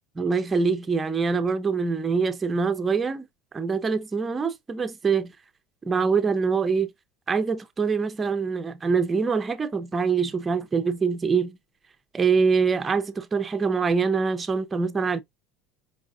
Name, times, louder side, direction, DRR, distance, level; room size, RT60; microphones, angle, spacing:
voice 1, 0.2-3.3 3.5-5.3 5.8-6.9 7.3-11.6 12.1-15.2, right 5 dB, 15° right, 0.6 m, -24 dB
4.7 x 3.9 x 2.4 m
cardioid pair, 155°, 0 cm